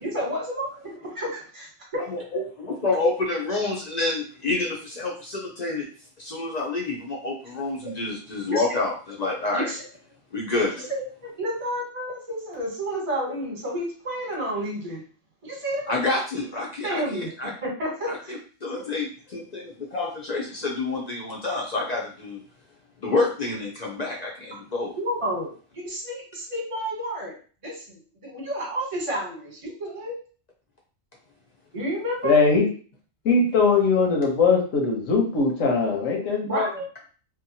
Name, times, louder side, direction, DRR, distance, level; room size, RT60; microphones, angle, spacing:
voice 1, 0.0-2.0 7.5-7.9 8.5-8.6 9.5-9.8 11.2-15.0 15.4-15.9 16.8-18.3 18.7-18.8 25.0-27.3 27.6-30.1 31.7-32.4 36.4-36.9, equal, 30° right, -2 dB, 1.0 m, -31 dB
voice 2, 2.1-5.9 6.2-9.7 10.3-10.9 15.9-17.5 18.1-22.4 23.0-24.9, left 3 dB, 50° left, -2 dB, 0.5 m, -28 dB
voice 3, 32.2-32.7 33.2-36.7, left 4 dB, 85° left, 0 dB, 1.2 m, -20 dB
2.9 x 2.2 x 2.7 m, 0.40 s
omnidirectional pair, 1.3 m